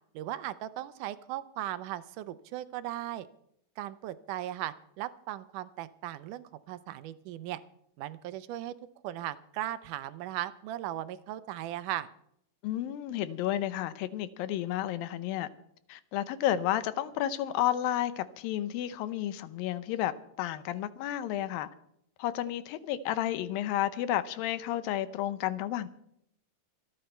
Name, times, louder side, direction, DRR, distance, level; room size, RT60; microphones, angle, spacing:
voice 1, 0.1-3.3 3.8-7.6 8.0-8.7 9.0-12.1, right 13 dB, 75° right, 2.1 m, -37 dB
voice 2, 12.6-15.5 15.9-21.7 22.2-25.9, left 12 dB, 90° left, 2.6 m, -31 dB
26.5 x 9.3 x 4.4 m
omnidirectional pair, 4.0 m